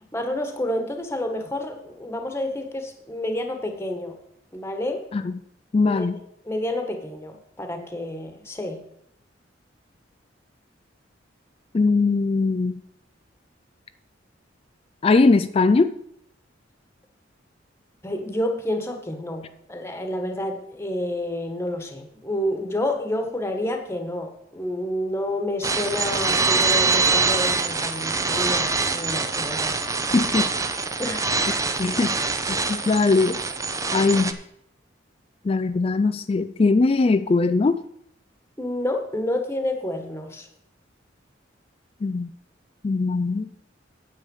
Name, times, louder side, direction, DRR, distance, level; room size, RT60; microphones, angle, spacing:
voice 1, 0.1-4.2 4.5-5.0 5.9-6.1 6.4-8.8 18.0-29.8 31.0-31.2 32.1-32.2 38.6-40.5, left 1 dB, 15° left, 5 dB, 1.4 m, -29 dB
voice 2, 5.7-6.2 11.7-12.8 15.0-15.9 30.1-30.5 31.8-32.2 32.7-33.4 33.9-34.4 35.4-37.8 42.0-42.3 42.8-43.5, left 3 dB, 30° left, 12 dB, 0.3 m, -20 dB
sound 1, 25.6-34.3, right 4 dB, 15° right, 0.7 m, -24 dB
9.1 x 8.4 x 5.4 m, 0.76 s
head